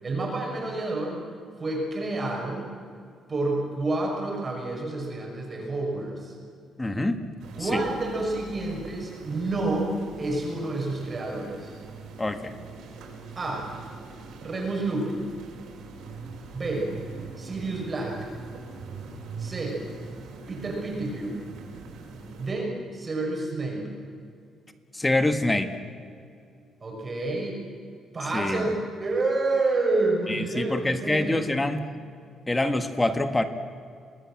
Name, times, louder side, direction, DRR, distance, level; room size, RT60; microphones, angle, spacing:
voice 1, 0.0-1.2 1.6-2.7 3.3-6.3 7.6-11.7 13.4-13.6 14.4-15.3 16.5-16.9 17.4-18.2 19.4-19.8 20.5-21.4 22.4-23.9 26.8-27.6 28.1-28.7 29.0-31.4, right 2 dB, 25° right, -1 dB, 6.2 m, -29 dB
voice 2, 6.8-7.2 7.6-7.8 12.2-12.5 24.9-25.7 28.3-28.6 30.3-31.9 32.5-33.5, left 2 dB, 10° left, 8 dB, 1.5 m, -25 dB
sound 1, 7.4-22.5, right 4 dB, 80° right, 6.0 m, -42 dB
28.0 x 20.0 x 7.6 m, 2.4 s
cardioid pair, 155°, 0 cm